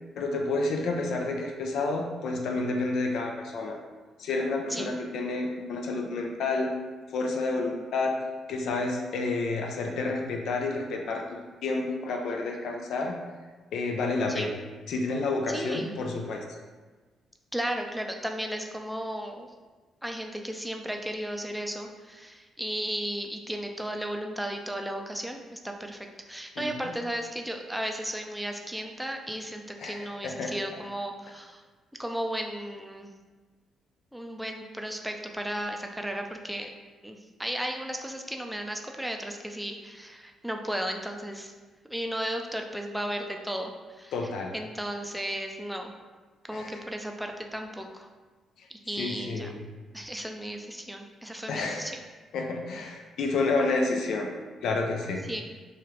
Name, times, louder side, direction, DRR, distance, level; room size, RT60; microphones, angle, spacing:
voice 1, 0.2-3.8 4.2-6.7 7.1-8.2 8.5-11.2 11.6-13.2 13.7-14.5 14.9-16.4 26.6-26.7 29.8-30.5 44.1-44.5 46.5-46.8 49.0-49.6 51.5-51.9 52.3-54.3 54.6-55.2, left 3 dB, 70° left, 2 dB, 0.4 m, -29 dB
voice 2, 15.5-16.0 17.5-19.5 20.0-31.6 32.0-33.1 34.1-36.7 37.0-41.5 41.9-44.1 44.5-45.9 46.5-48.1 48.9-49.5 49.9-52.0 55.3-55.4, equal, 5° right, 3 dB, 0.4 m, -34 dB
3.2 x 2.3 x 3.0 m, 1.3 s
supercardioid pair, 55°, 0 cm